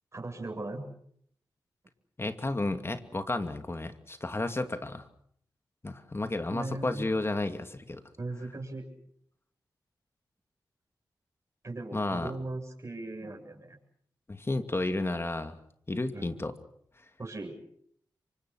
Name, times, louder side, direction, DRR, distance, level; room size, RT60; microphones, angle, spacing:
voice 1, 0.1-0.9 6.5-7.2 8.2-8.8 11.6-13.8 16.1-16.4 17.2-17.6, right 2 dB, 35° right, 2 dB, 7.9 m, -38 dB
voice 2, 2.2-5.1 5.8-8.0 11.9-12.3 14.3-15.6 15.9-16.5, left 2 dB, 30° left, 8 dB, 2.5 m, -32 dB
27.0 x 24.5 x 6.4 m, 0.66 s
cardioid pair, 55°, 8 cm